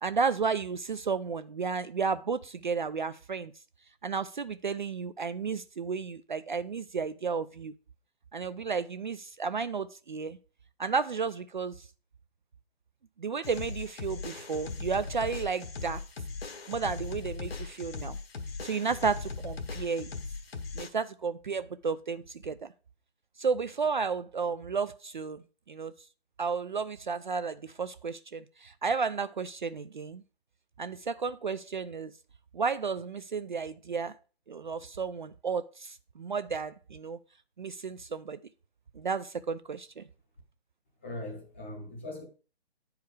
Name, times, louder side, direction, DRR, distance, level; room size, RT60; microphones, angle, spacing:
voice 1, 0.0-3.5 4.0-7.7 8.3-10.4 10.8-11.9 13.2-16.0 16.7-18.2 18.6-20.1 20.7-22.7 23.4-25.9 26.4-30.2 30.8-32.1 32.5-34.1 34.5-37.2 37.6-38.4 39.0-40.0, right 5 dB, 50° right, 0.4 m, -32 dB
sound 1, 13.4-20.9, left 4 dB, 70° left, 1.3 m, -39 dB
voice 2, 41.0-42.2, left 1 dB, 10° left, 0.8 m, -40 dB
9.4 x 4.8 x 4.7 m
hypercardioid pair, 170°, 31 cm